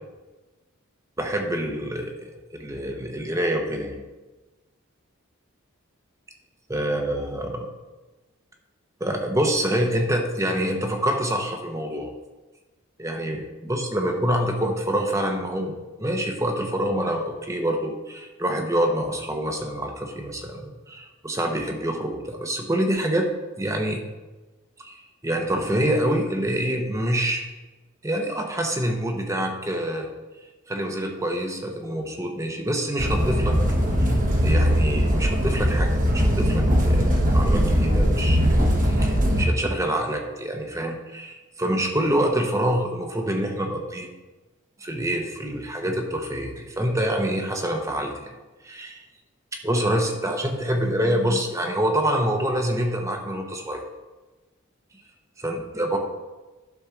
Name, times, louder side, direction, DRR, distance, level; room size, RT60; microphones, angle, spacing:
voice 1, 1.2-4.0 6.7-7.7 9.0-12.1 13.0-23.3 23.6-24.0 24.8-25.0 25.2-27.4 28.0-30.1 30.7-33.6 34.0-34.1 34.4-44.1 44.8-48.3 48.6-49.0 49.6-53.8 55.4-56.0, right 1 dB, 15° right, 3 dB, 1.0 m, -26 dB
sound 1, 33.0-39.4, equal, 40° right, 1.4 m, -20 dB
12.0 x 4.4 x 6.0 m, 1.2 s
head